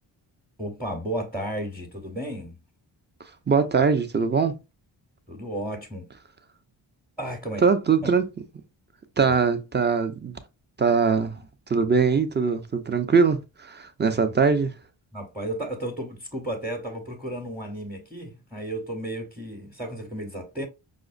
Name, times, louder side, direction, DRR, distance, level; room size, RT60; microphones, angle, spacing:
voice 1, 0.6-2.6 5.3-6.1 7.2-7.6 8.0-8.1 9.3-9.4 14.2-14.3 15.1-20.7, right 1 dB, ahead, 0.8 m, -33 dB
voice 2, 3.5-4.6 7.6-8.2 9.2-10.3 10.8-11.4 11.7-14.7, right 5 dB, 20° right, 0.5 m, -22 dB
4.8 x 2.1 x 2.5 m
supercardioid pair, 55°, 49 cm